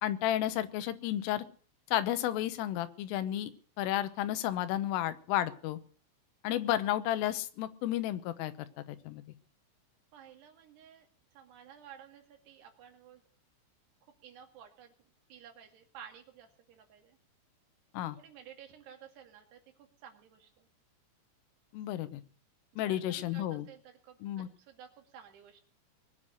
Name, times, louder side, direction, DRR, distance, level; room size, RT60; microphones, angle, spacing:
voice 1, 0.0-1.4 1.9-3.5 3.8-5.8 6.4-9.2 17.9-18.2 21.7-22.2 22.8-23.7 24.2-24.5, left 13 dB, 80° left, 12 dB, 3.4 m, -32 dB
voice 2, 10.1-11.1 11.3-13.2 14.2-17.2 18.2-20.7 22.7-25.6, right 8 dB, 60° right, 4 dB, 3.9 m, -54 dB
21.0 x 8.0 x 7.8 m, 0.42 s
omnidirectional pair, 6.0 m